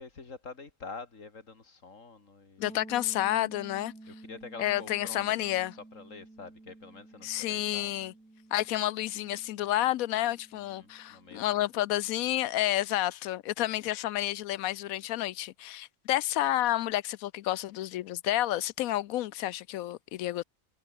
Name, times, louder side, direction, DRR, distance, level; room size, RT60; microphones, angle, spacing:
voice 1, 0.0-2.7 4.1-7.9 10.5-11.6, left 4 dB, 65° left, 3.0 m, -47 dB
voice 2, 2.6-3.9 4.6-5.7 7.2-8.1 8.5-20.4, left 14 dB, 80° left, 1.0 m, -30 dB
sound 1, 2.6-12.3, right 2 dB, 85° right, 6.8 m, -52 dB
omnidirectional pair, 1.5 m